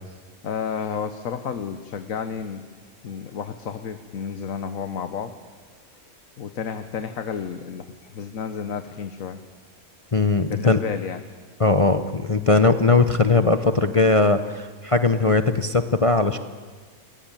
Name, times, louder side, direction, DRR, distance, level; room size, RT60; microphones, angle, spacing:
voice 1, 0.4-2.6 3.0-5.4 6.4-9.4 10.5-11.2, left 6 dB, 80° left, 9 dB, 1.5 m, -31 dB
voice 2, 10.1-10.8 11.6-16.4, left 3 dB, 30° left, 9 dB, 0.8 m, -19 dB
30.0 x 20.5 x 9.0 m, 1.5 s
omnidirectional pair, 1.4 m